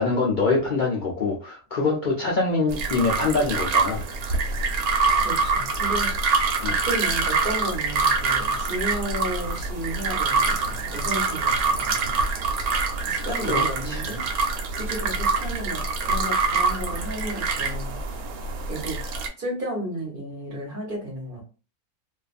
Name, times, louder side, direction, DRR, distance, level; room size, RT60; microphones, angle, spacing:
voice 1, 0.0-4.1 6.6-6.7 13.4-14.0, left 3 dB, 80° left, -3 dB, 0.4 m, -24 dB
sound 1, 2.7-19.3, right 4 dB, 90° right, 1.1 m, -25 dB
voice 2, 5.2-6.1 6.6-12.2 13.0-14.2 14.7-18.0 18.7-19.0 19.4-21.4, right 1 dB, 45° right, -1 dB, 0.9 m, -33 dB
2.6 x 2.3 x 2.4 m, 0.34 s
omnidirectional pair, 1.6 m